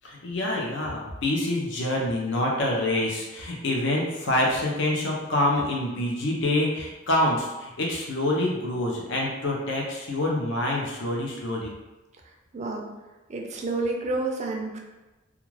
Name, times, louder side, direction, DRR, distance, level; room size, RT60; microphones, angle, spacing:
voice 1, 0.0-11.7, left 1 dB, 60° left, -1 dB, 0.6 m, -26 dB
voice 2, 12.5-12.9 13.3-14.8, right 2 dB, 35° right, 2 dB, 0.4 m, -29 dB
2.4 x 2.3 x 3.1 m, 1.1 s
head